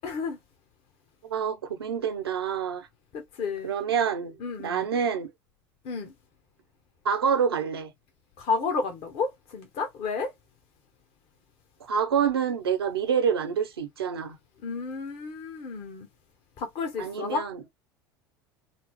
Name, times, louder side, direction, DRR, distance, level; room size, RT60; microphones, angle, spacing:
voice 1, 0.0-0.4 3.1-3.7 4.4-4.9 5.8-6.1 8.4-10.3 14.6-16.1 16.6-17.4, left 4 dB, 55° left, 1.0 m, -31 dB
voice 2, 1.2-2.9 3.6-4.3 4.6-5.3 7.0-7.9 11.8-14.4 17.0-17.6, right 7 dB, 85° right, 0.7 m, -27 dB
4.1 x 2.0 x 2.9 m
hypercardioid pair, 80°, 12 cm